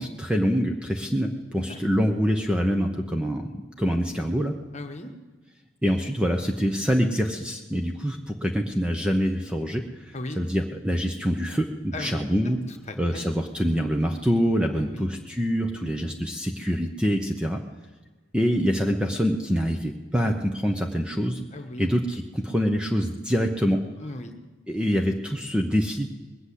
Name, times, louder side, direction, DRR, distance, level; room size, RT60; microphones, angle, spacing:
voice 1, 0.0-4.5 5.8-12.6 13.0-17.6 18.3-21.4 21.8-23.8 24.7-26.1, equal, 5° right, 3 dB, 0.7 m, -25 dB
voice 2, 4.7-5.1 10.1-10.4 11.9-13.2 14.7-15.1 21.5-21.9 24.0-24.3, left 2 dB, 35° left, 6 dB, 1.2 m, -38 dB
20.5 x 8.0 x 8.1 m, 1.3 s
head